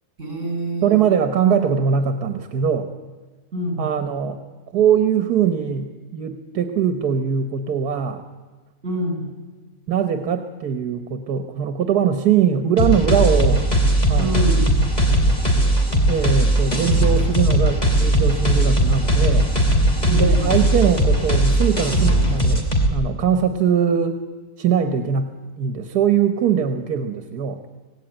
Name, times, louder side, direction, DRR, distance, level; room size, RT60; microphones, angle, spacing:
voice 1, 0.2-1.0 3.5-3.9 8.8-9.3 14.2-14.7 20.0-20.6, right 1 dB, 50° right, 2 dB, 7.1 m, -26 dB
voice 2, 0.8-2.9 3.8-4.4 4.7-8.3 9.9-13.7 14.1-14.4 16.1-19.5 20.1-24.2 24.6-25.3 25.6-27.6, right 7 dB, 85° right, 7 dB, 1.7 m, -21 dB
sound 1, 12.8-22.9, right 1 dB, 25° left, 3.5 m, -18 dB
25.5 x 18.5 x 9.1 m, 1.3 s
omnidirectional pair, 1.6 m